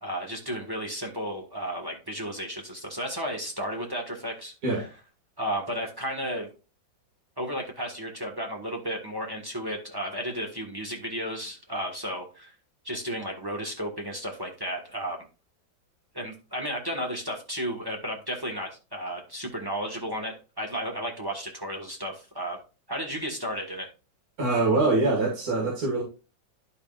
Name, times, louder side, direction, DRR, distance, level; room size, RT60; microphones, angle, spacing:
voice 1, 0.0-4.9 5.4-6.5 7.4-12.5 12.8-15.2 16.1-22.6 22.9-23.9, equal, 15° right, 0 dB, 1.3 m, -33 dB
voice 2, 24.4-26.0, right 3 dB, 50° right, -4 dB, 2.4 m, -24 dB
11.5 x 5.5 x 2.4 m, 0.32 s
omnidirectional pair, 2.0 m